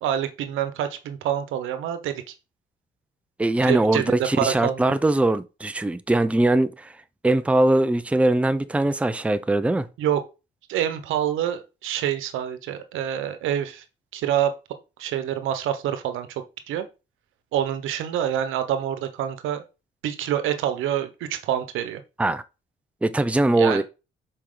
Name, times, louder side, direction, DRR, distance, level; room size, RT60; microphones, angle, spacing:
voice 1, 0.0-2.3 3.6-4.9 10.0-10.2 10.7-13.8 14.1-14.5 15.0-16.3 16.7-16.9 17.5-19.6 20.0-22.0 23.6-23.8, right 10 dB, 90° right, 0.9 m, -26 dB
voice 2, 3.4-6.9 7.2-9.9 22.2-22.4 23.0-23.8, right 2 dB, 5° right, 0.5 m, -21 dB
6.5 x 4.6 x 3.8 m
cardioid pair, 90°, 20 cm